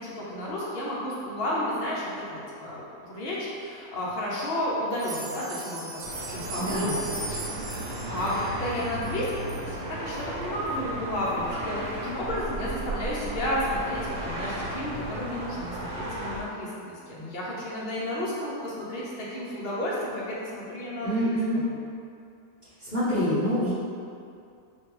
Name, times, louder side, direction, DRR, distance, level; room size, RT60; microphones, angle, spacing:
voice 1, 0.0-21.7, left 1 dB, 65° left, -6 dB, 0.5 m, -32 dB
sound 1, 4.9-9.7 10.1-10.2 10.7-10.8 11.3-11.4, right 2 dB, 90° right, 1.2 m, -39 dB
sound 2, 6.0-16.4, right 1 dB, 65° right, 1.2 m, -35 dB
voice 2, 6.6-7.0 21.0-21.6 22.8-23.7, equal, 35° left, -15 dB, 1.1 m, -26 dB
4.3 x 2.3 x 3.1 m, 2.4 s
omnidirectional pair, 1.7 m